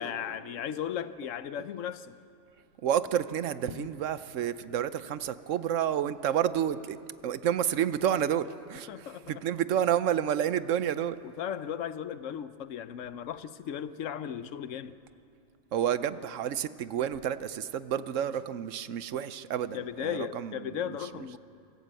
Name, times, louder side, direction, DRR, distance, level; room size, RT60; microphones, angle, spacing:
voice 1, 0.0-2.2 3.6-3.9 8.9-9.4 11.2-14.9 19.7-21.4, left 9 dB, 85° left, 14 dB, 1.1 m, -36 dB
voice 2, 2.8-7.0 7.2-11.2 15.7-20.8 21.2-21.4, right 9 dB, 80° right, 14 dB, 1.1 m, -30 dB
25.5 x 14.5 x 7.7 m, 2.6 s
omnidirectional pair, 1.3 m